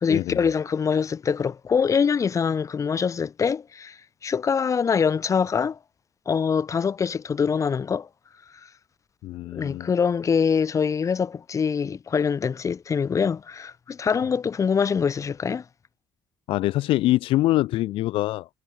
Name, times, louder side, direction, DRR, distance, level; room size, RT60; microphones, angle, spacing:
voice 1, 0.0-4.0 4.2-5.8 6.3-8.1 9.5-15.6, left 6 dB, 35° left, 4.8 m, -24 dB
voice 2, 9.2-9.9 16.5-18.5, left 16 dB, 85° left, 2.6 m, -24 dB
cardioid pair, 115°, 9 cm